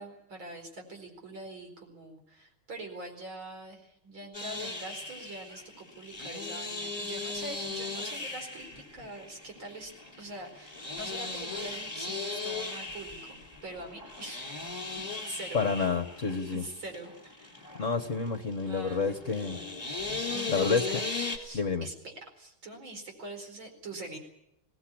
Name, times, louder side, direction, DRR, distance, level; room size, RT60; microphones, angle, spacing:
voice 1, 0.0-9.9 10.2-14.6 15.0-15.9 16.5-17.7 18.6-19.7 20.3-21.0 21.3-24.2, right 1 dB, 65° right, 4 dB, 5.3 m, -44 dB
sound 1, 4.3-21.4, left 3 dB, 10° left, 3.4 m, -38 dB
voice 2, 15.5-16.6 17.8-19.6 20.5-20.9 21.5-21.9, left 5 dB, 40° left, 7 dB, 1.4 m, -29 dB
23.0 x 18.5 x 8.6 m, 0.80 s
omnidirectional pair, 2.4 m